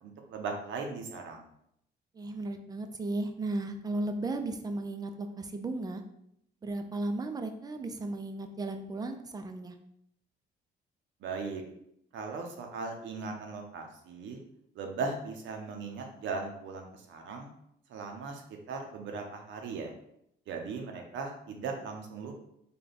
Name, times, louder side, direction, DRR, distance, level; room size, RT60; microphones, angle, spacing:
voice 1, 0.0-1.4 11.2-11.6 12.1-14.4 14.8-17.5 17.9-18.4 18.7-19.9 20.5-22.3, right 4 dB, 85° right, 3 dB, 0.7 m, -38 dB
voice 2, 2.1-6.0 6.6-9.7, right 2 dB, 20° right, 7 dB, 0.4 m, -35 dB
3.4 x 2.3 x 4.0 m, 0.74 s
cardioid pair, 105°, 19 cm